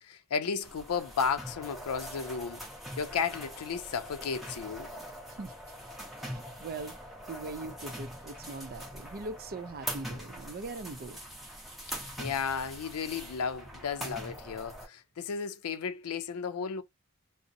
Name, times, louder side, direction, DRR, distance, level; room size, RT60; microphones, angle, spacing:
voice 1, 0.1-2.6 3.0-4.9 11.9-16.8, left 6 dB, 90° left, 0.4 m, -34 dB
sound 1, 0.6-14.9, equal, ahead, 0.6 m, -43 dB
voice 2, 6.2-7.0 7.3-11.2, right 3 dB, 40° right, 0.4 m, -41 dB
2.6 x 2.0 x 2.6 m
head